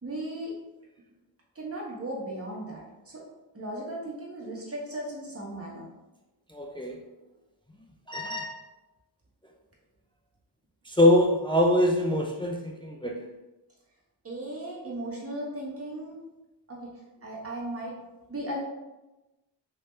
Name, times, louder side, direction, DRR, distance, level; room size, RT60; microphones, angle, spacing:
voice 1, 0.0-0.5 1.5-3.2 3.5-5.9 14.2-16.2 16.7-16.9 17.2-18.0 18.3-18.6, right 1 dB, 30° right, -4 dB, 1.2 m, -36 dB
voice 2, 6.5-7.0 8.1-8.6 10.9-13.3, left 1 dB, 10° left, 0 dB, 0.4 m, -24 dB
3.4 x 2.7 x 3.1 m, 1.0 s
cardioid pair, 60°, 43 cm